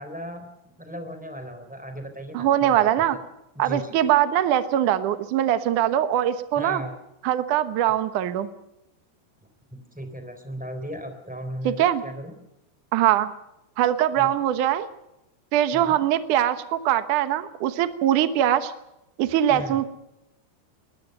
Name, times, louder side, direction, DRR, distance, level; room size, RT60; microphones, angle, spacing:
voice 1, 0.0-2.9 3.6-3.9 6.6-7.0 9.7-12.3 14.2-14.4 15.7-16.0 19.5-19.8, equal, ahead, 7 dB, 3.0 m, -36 dB
voice 2, 2.3-3.2 3.6-6.8 7.2-8.5 11.6-12.0 12.9-13.3 13.8-14.9 15.5-18.7 19.2-19.9, right 11 dB, 70° right, 11 dB, 2.0 m, -22 dB
22.5 x 20.5 x 6.7 m, 0.88 s
omnidirectional pair, 5.0 m